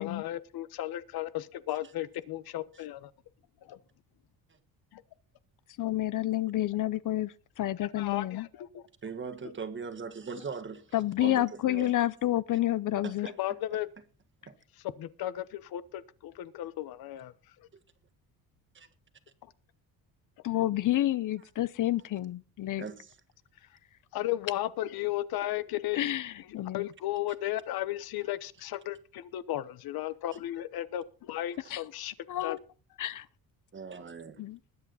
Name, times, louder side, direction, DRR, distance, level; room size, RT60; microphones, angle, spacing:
voice 1, 0.0-3.1 3.6-3.8 4.9-5.0 7.8-8.8 13.4-13.9 15.0-17.3 17.6-17.7 24.1-26.1 26.7-32.1 32.4-32.6, left 14 dB, 75° left, 1.1 m, -35 dB
voice 2, 5.8-8.5 10.9-13.3 20.4-22.8 26.0-26.9 31.7-31.8 32.3-32.6 33.0-33.3 34.4-34.6, left 14 dB, 55° left, 0.7 m, -29 dB
voice 3, 9.0-10.9 11.2-11.9 13.0-13.4 13.7-13.8 14.5-14.6 18.7-18.9 22.8-23.1 33.7-34.4, right 5 dB, 30° right, 1.6 m, -40 dB
20.5 x 8.5 x 4.1 m
cardioid pair, 125°, 37 cm